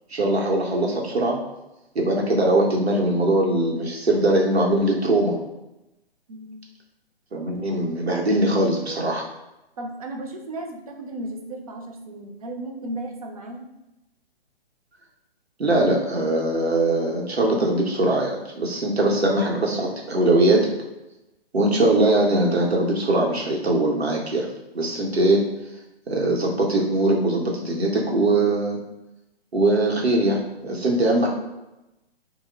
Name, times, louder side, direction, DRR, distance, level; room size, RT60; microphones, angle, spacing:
voice 1, 0.1-1.4 1.9-5.4 7.3-9.2 15.6-20.7 21.5-24.5 24.7-25.4 26.1-28.8 29.5-31.3, right 2 dB, 80° right, -1 dB, 0.8 m, -21 dB
voice 2, 6.3-6.6 9.8-13.7, right 1 dB, 35° right, 3 dB, 0.4 m, -35 dB
3.0 x 2.1 x 3.3 m, 0.96 s
figure-of-eight pair, 125°, 31 cm